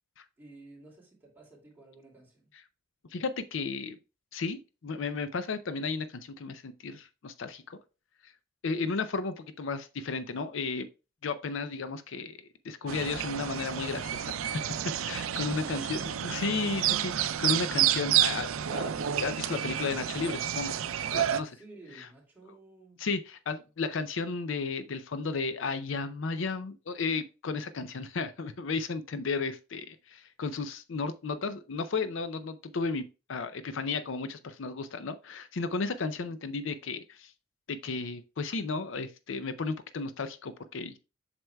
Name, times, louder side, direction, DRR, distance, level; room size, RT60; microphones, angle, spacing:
voice 1, 0.4-2.5 21.5-23.1, right 2 dB, 10° right, 2.5 m, -53 dB
voice 2, 3.1-4.0 4.3-7.8 8.2-8.3 8.6-10.9 11.2-12.4 12.6-14.6 15.0-20.8 21.1-21.6 22.0-22.1 23.0-37.3 37.7-41.0, left 4 dB, 65° left, 0.5 m, -34 dB
sound 1, 12.9-21.4, right 10 dB, 85° right, 0.4 m, -30 dB
7.7 x 5.8 x 2.3 m
head